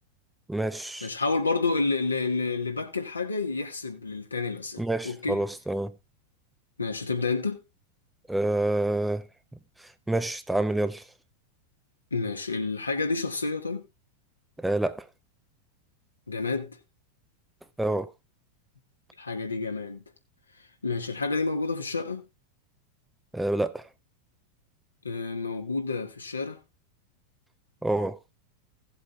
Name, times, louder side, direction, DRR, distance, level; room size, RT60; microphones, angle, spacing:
voice 1, 0.5-1.1 4.8-5.9 8.3-9.2 10.1-11.0 14.6-15.1 17.8-18.1 23.3-23.8 27.8-28.2, right 1 dB, 5° right, 0.6 m, -27 dB
voice 2, 1.0-5.4 6.8-7.6 12.1-13.8 16.3-16.8 19.2-20.0 20.8-22.2 25.0-26.6, left 3 dB, 80° left, 1.7 m, -29 dB
17.0 x 7.8 x 2.5 m
figure-of-eight pair, 90°, 0 cm